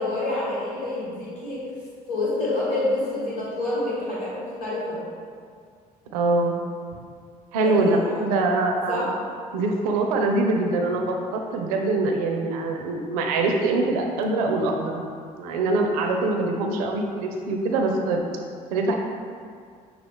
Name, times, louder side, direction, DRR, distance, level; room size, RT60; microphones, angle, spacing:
voice 1, 0.0-1.7 2.1-5.0 7.6-8.2 8.9-9.1, left 2 dB, 80° left, -8 dB, 1.4 m, -27 dB
voice 2, 6.1-6.6 7.5-9.1 9.5-15.0 15.4-18.2 18.7-18.9, right 2 dB, 75° right, 2 dB, 0.5 m, -23 dB
6.3 x 2.4 x 3.5 m, 2.2 s
hypercardioid pair, 55°, 19 cm